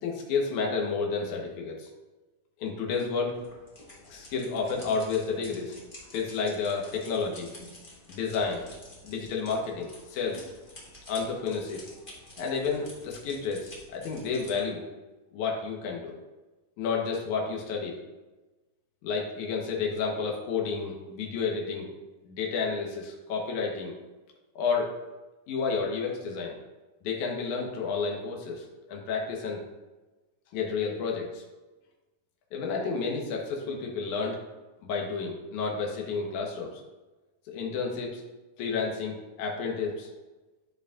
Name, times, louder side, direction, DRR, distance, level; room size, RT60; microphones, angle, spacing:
voice 1, 0.0-1.9 2.6-3.4 4.1-5.8 6.1-7.5 8.1-8.7 9.0-10.5 11.1-11.8 12.4-14.9 15.3-16.2 16.8-18.0 19.0-21.9 22.2-23.9 24.6-25.0 25.5-26.6 27.0-29.6 30.5-31.4 32.5-34.4 34.8-36.8 37.5-38.2 38.6-40.1, left 5 dB, 70° left, 0 dB, 2.5 m, -31 dB
sound 1, 3.3-14.6, left 1 dB, 30° left, 0.8 m, -49 dB
13.0 x 4.8 x 2.5 m, 1.1 s
omnidirectional pair, 3.7 m